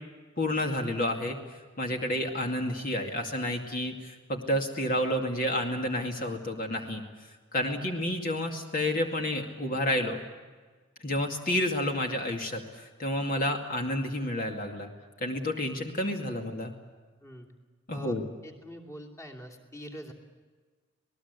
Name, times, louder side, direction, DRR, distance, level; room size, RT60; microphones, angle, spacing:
voice 1, 0.4-1.4 1.8-7.0 7.5-10.2 11.0-14.9 15.2-16.7 17.9-18.2, left 1 dB, 45° left, 3 dB, 2.4 m, -30 dB
voice 2, 17.2-17.5 17.9-20.1, equal, 15° left, 3 dB, 2.8 m, -45 dB
27.0 x 19.5 x 8.3 m, 1.4 s
head